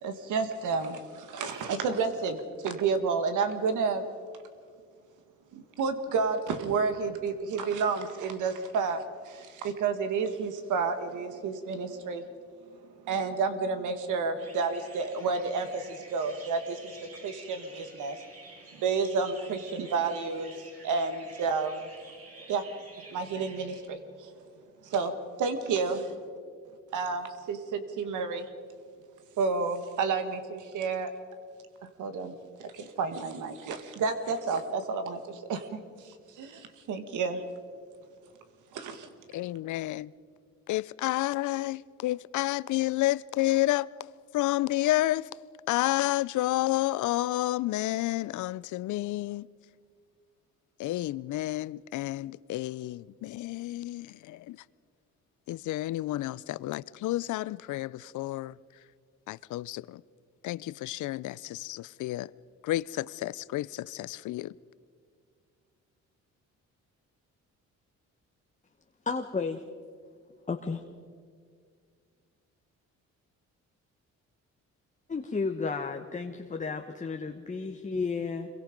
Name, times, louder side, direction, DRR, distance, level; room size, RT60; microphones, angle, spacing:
voice 1, 0.0-4.0 5.5-12.3 12.7-18.3 18.7-21.9 22.5-22.6 23.0-24.5 24.8-26.2 26.9-28.5 29.4-31.1 31.8-37.4 38.7-39.1, right 4 dB, 80° right, 1.9 m, -31 dB
sound 1, 14.4-23.8, right 3 dB, 50° right, 6.1 m, -50 dB
voice 2, 39.3-40.1 40.7-43.9 44.3-45.3 45.7-49.5 50.8-54.6 55.5-58.6 59.3-60.0 60.4-62.3 62.6-64.5, left 16 dB, 75° left, 0.5 m, -30 dB
voice 3, 69.1-69.5 70.5-70.8 75.1-78.5, left 4 dB, 25° left, 1.2 m, -32 dB
26.0 x 23.0 x 5.2 m
cardioid pair, 90°, 30 cm